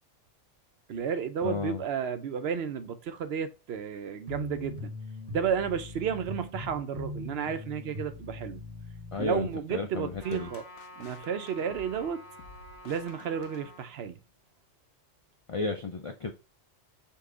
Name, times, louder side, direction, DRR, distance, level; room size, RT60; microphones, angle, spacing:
voice 1, 0.9-4.9 5.3-8.6 9.2-10.6 11.0-12.2 12.8-14.2, right 7 dB, 65° right, 0.8 m, -32 dB
voice 2, 1.4-1.8 9.1-10.5 15.5-16.3, left 4 dB, 60° left, 0.3 m, -33 dB
sound 1, 4.3-9.6, left 2 dB, 35° right, 0.8 m, -41 dB
sound 2, 10.1-14.2, left 4 dB, 85° left, 0.9 m, -53 dB
Trumpet, 10.2-13.9, left 1 dB, 20° left, 1.3 m, -49 dB
5.3 x 2.3 x 3.7 m
omnidirectional pair, 1.2 m